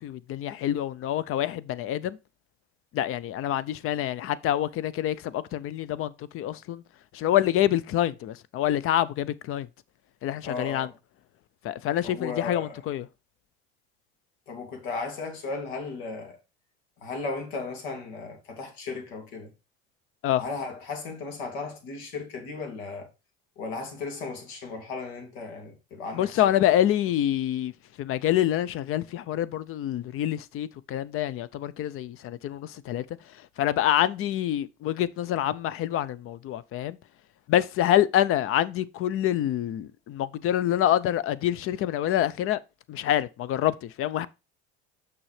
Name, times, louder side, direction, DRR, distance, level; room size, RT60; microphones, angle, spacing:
voice 1, 0.0-2.2 2.9-6.8 7.1-9.7 10.2-10.9 11.6-13.1 20.2-20.4 26.1-27.7 28.0-33.0 33.6-37.0 37.5-42.6 42.9-44.3, left 12 dB, 45° left, 0.6 m, -26 dB
voice 2, 10.4-10.9 12.0-12.8 14.5-16.4 17.0-19.5 20.4-23.1 23.6-26.4, left 4 dB, 75° left, 2.5 m, -35 dB
6.1 x 6.1 x 3.2 m
hypercardioid pair, 90°, 32 cm